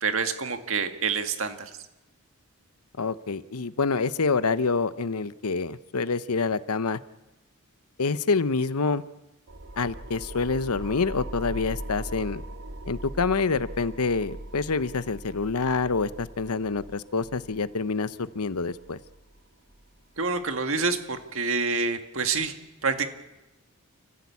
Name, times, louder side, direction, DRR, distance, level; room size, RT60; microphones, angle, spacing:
voice 1, 0.0-1.6 20.2-22.5 22.8-23.1, right 4 dB, 65° right, 7 dB, 1.9 m, -27 dB
voice 2, 3.0-7.0 8.0-9.0 9.8-12.4 12.9-19.0, left 4 dB, 90° left, 14 dB, 0.9 m, -27 dB
sound 1, 9.5-20.5, right 1 dB, 85° right, 2.1 m, -41 dB
29.0 x 15.5 x 8.5 m, 1.0 s
head